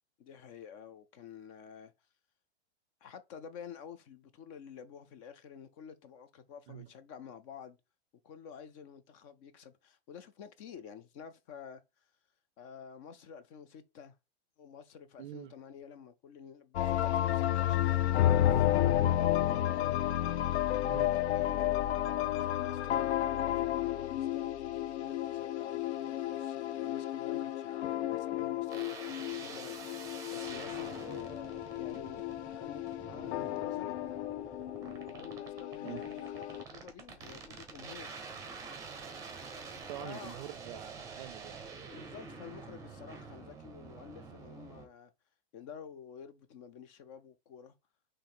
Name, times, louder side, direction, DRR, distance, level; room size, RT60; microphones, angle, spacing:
voice 1, 0.2-1.9 3.0-7.8 8.2-11.8 12.6-14.1 14.6-19.6 20.8-21.1 21.3-29.8 30.0-34.0 34.8-38.1 40.0-40.4 41.9-45.1 45.5-47.7, left 7 dB, 30° left, 0.5 m, -50 dB
voice 2, 15.2-15.5 20.8-21.1 35.8-36.2 39.9-41.6, right 14 dB, 50° right, 0.4 m, -45 dB
sound 1, 16.7-36.6, left 12 dB, 85° left, 0.5 m, -32 dB
sound 2, 28.7-44.9, right 5 dB, 10° right, 1.1 m, -47 dB
4.5 x 3.2 x 3.6 m
supercardioid pair, 150°, 33 cm